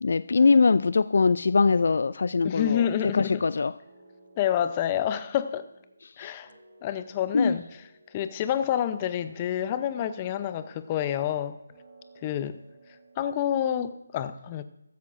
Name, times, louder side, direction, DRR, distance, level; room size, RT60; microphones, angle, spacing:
voice 1, 0.0-3.7 6.2-6.3 7.3-7.6, left 4 dB, 60° left, 16 dB, 0.3 m, -22 dB
voice 2, 2.4-3.4 4.4-5.7 6.2-6.5 6.8-7.6 8.1-11.6 12.2-12.6 13.2-14.6, left 10 dB, 25° left, 12 dB, 0.6 m, -28 dB
sound 1, 3.8-6.1 6.4-8.8 9.1-11.4 11.7-14.0, right 2 dB, 35° right, 3.5 m, -56 dB
15.0 x 13.0 x 2.5 m, 0.86 s
figure-of-eight pair, 155°, 0 cm